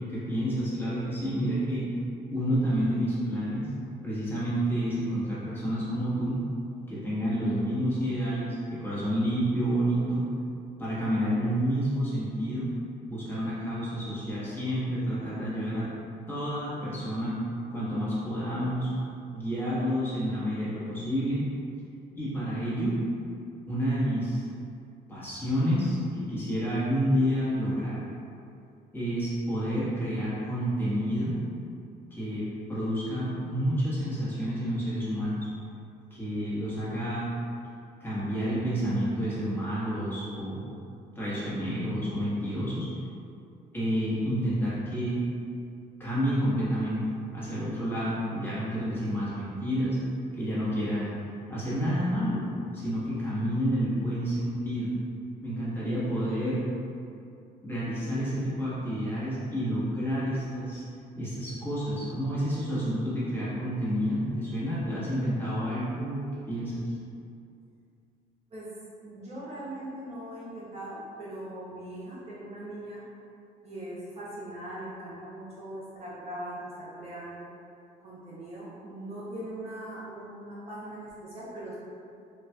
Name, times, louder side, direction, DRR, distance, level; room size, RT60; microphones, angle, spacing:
voice 1, 0.0-1.9 2.3-3.7 4.0-6.4 6.9-10.2 10.8-12.7 13.1-15.9 16.3-17.4 17.7-18.9 19.3-21.5 22.2-23.0 23.7-24.4 25.1-28.0 28.9-31.4 32.1-35.5 36.1-37.3 38.0-40.7 41.1-42.9 43.7-45.2 46.0-47.0 47.3-50.0 50.3-51.1 51.5-52.5 52.7-54.9 55.4-56.6 57.6-60.8 61.2-66.9, equal, 15° left, -10 dB, 1.1 m, -29 dB
voice 2, 69.0-73.0 73.6-77.5 78.0-81.7, right 1 dB, 40° right, -8 dB, 0.7 m, -40 dB
4.0 x 2.3 x 2.2 m, 2.5 s
cardioid pair, 110°, 17 cm